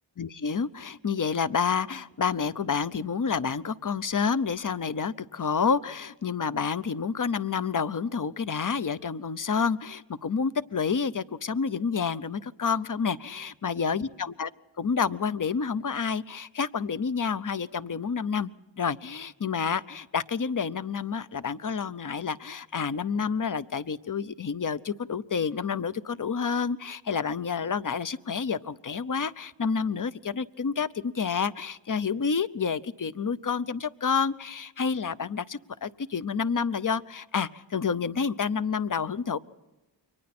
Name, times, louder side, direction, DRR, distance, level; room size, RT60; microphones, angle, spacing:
voice 1, 0.2-14.5 14.8-18.5 18.8-39.4, left 6 dB, 40° left, 16 dB, 0.7 m, -29 dB
29.0 x 24.0 x 4.3 m, 1.0 s
wide cardioid pair, 80°, 47 cm